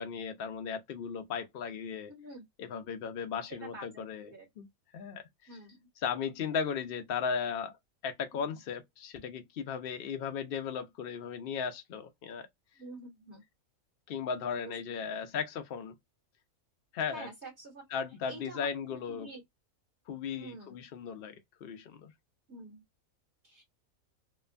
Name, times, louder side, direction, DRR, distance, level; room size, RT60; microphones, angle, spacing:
voice 1, 0.0-2.1 2.6-4.7 4.9-5.5 6.0-7.8 8.0-12.5 14.1-15.9 16.9-17.3 17.9-19.3 20.1-22.1, left 6 dB, 70° left, 0.5 m, -36 dB
voice 2, 2.1-2.4 3.5-4.5 5.5-5.8 8.3-8.6 12.8-13.4 14.6-14.7 17.1-17.8 18.3-18.7 19.1-19.4 20.3-20.8 22.5-22.8 23.4-23.6, right 2 dB, 55° right, 1.3 m, -47 dB
2.9 x 2.1 x 2.4 m
omnidirectional pair, 1.5 m